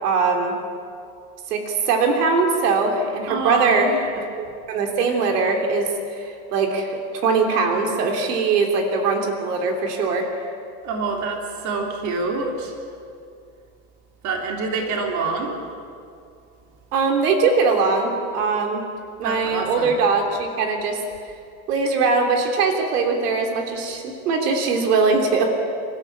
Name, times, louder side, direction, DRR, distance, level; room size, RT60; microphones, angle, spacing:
voice 1, 0.0-0.6 1.5-4.2 4.7-10.4 16.9-18.8 19.2-21.0 21.7-25.5, right 4 dB, 85° right, 3 dB, 3.3 m, -21 dB
voice 2, 3.3-4.0 10.8-12.7 14.2-15.6 19.2-20.0, right 4 dB, 40° right, 1 dB, 3.5 m, -26 dB
28.5 x 13.0 x 8.6 m, 2.4 s
supercardioid pair, 145°, 46 cm